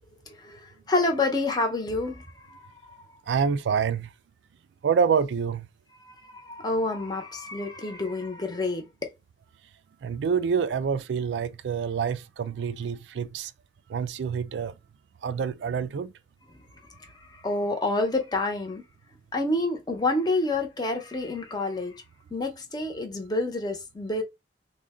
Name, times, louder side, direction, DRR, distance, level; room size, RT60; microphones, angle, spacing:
voice 1, 0.3-3.0 6.0-9.1 16.5-16.6 16.9-18.9 19.3-22.0 22.3-24.2, left 2 dB, 25° left, 0.8 m, -28 dB
voice 2, 3.3-4.1 4.8-5.7 10.0-13.5 13.9-14.8 15.2-16.1, right 6 dB, 75° right, 0.3 m, -27 dB
3.6 x 2.2 x 3.5 m
head